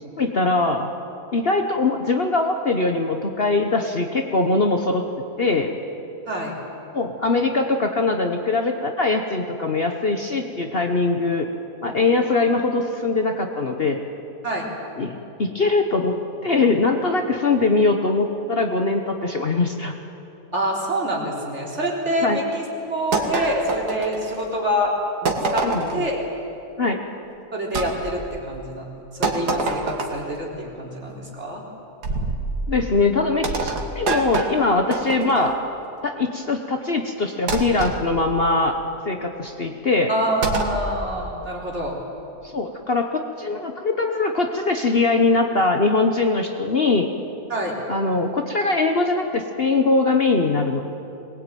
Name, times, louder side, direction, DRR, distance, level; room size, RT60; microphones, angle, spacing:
voice 1, 0.2-0.9 1.3-5.0 5.4-5.7 6.9-11.5 11.8-14.0 15.0-16.2 16.4-19.9 22.2-22.4 25.6-26.1 26.8-27.0 32.7-35.5 36.0-38.7 39.1-40.1 42.5-47.1 47.9-50.8, left 3 dB, 40° left, 4 dB, 1.2 m, -21 dB
voice 2, 20.5-24.9 25.2-26.2 27.5-28.9 29.1-31.6 40.1-42.0 47.5-47.8, equal, 45° right, -2 dB, 4.2 m, -26 dB
sound 1, 23.1-24.5 25.3-26.1 27.7-27.9 29.2-30.3 32.0-32.5 33.4-35.5 37.5-38.0 40.4-40.8, right 3 dB, 90° right, 2.3 m, -26 dB
22.0 x 19.5 x 9.2 m, 2.8 s
omnidirectional pair, 1.7 m